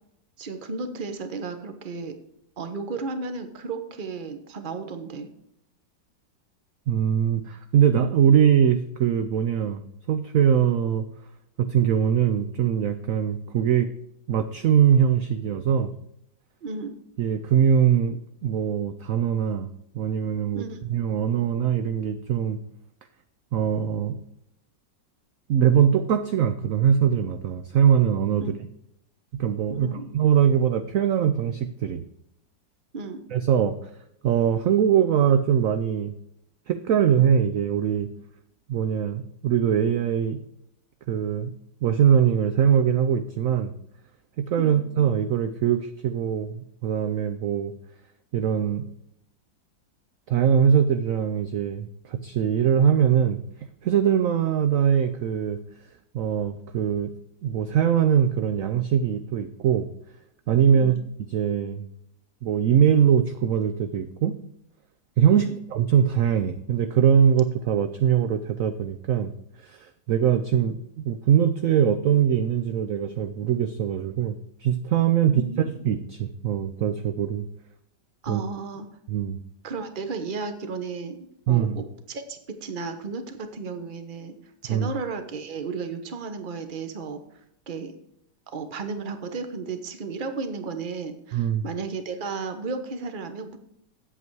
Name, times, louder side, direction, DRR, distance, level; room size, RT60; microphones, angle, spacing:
voice 1, 0.4-2.1 2.6-5.3 16.6-16.9 20.5-20.8 28.4-28.5 29.7-30.1 32.9-33.2 44.6-44.8 60.7-61.0 65.3-65.6 75.2-75.6 78.2-78.9 79.6-81.2 81.5-84.3 84.6-87.2 87.7-87.9 88.5-93.6, right 4 dB, 35° right, 8 dB, 0.9 m, -34 dB
voice 2, 6.9-11.0 11.6-13.9 14.3-15.9 17.2-19.7 19.9-20.6 20.9-22.6 23.5-24.2 25.5-28.6 29.3-32.0 33.3-33.8 34.2-36.1 36.7-38.1 38.7-40.4 41.1-41.5 41.8-43.7 44.4-47.7 48.3-48.8 50.3-53.4 53.8-55.6 56.1-57.1 57.4-59.9 60.5-60.9 61.3-61.9 62.4-64.4 65.2-69.3 69.6-75.4 75.8-77.5 78.3-78.4 79.1-79.4 81.5-81.8 84.7-84.9 91.3-91.6, right 8 dB, 70° right, 8 dB, 0.8 m, -22 dB
8.5 x 8.1 x 4.6 m, 0.77 s
omnidirectional pair, 2.0 m